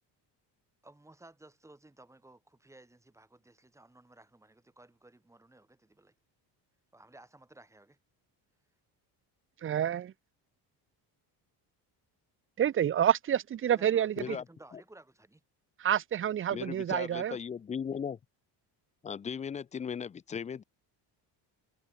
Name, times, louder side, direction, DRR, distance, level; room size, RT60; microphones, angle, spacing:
voice 1, 0.8-6.1 6.9-8.0 13.7-15.4, right 2 dB, 5° right, 6.2 m, -56 dB
voice 2, 9.6-10.1 12.6-14.4 15.8-17.4, right 10 dB, 30° right, 0.7 m, -28 dB
voice 3, 16.5-18.2 19.0-20.6, left 7 dB, 20° left, 0.4 m, -37 dB
cardioid pair, 170°, 42 cm